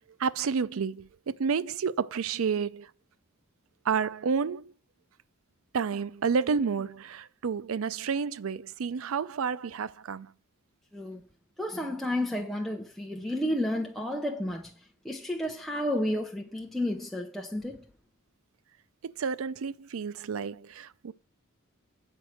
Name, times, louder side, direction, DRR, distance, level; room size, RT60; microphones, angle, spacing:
voice 1, 0.2-2.9 3.9-4.7 5.7-10.3 19.2-21.1, right 6 dB, 80° right, 0.5 m, -30 dB
voice 2, 11.6-14.7 15.0-17.8, left 1 dB, ahead, 0.8 m, -31 dB
8.9 x 4.6 x 6.4 m
head